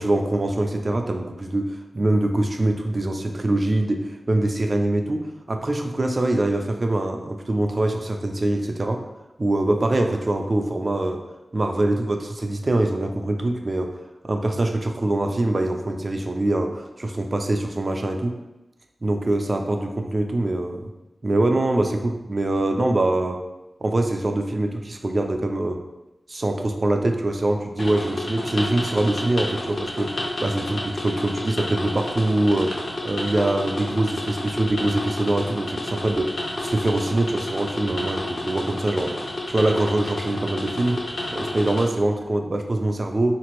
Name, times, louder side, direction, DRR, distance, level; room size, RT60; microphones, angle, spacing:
voice 1, 0.0-9.0 9.4-11.2 11.5-13.9 14.2-18.3 19.0-20.9 21.2-23.4 23.8-25.8 26.3-32.7 33.0-39.1 39.5-43.4, right 1 dB, 35° right, 4 dB, 0.3 m, -24 dB
sound 1, 27.8-41.9, left 1 dB, 55° left, 0.5 m, -30 dB
3.6 x 2.5 x 3.0 m, 0.98 s
wide cardioid pair, 115°, 0 cm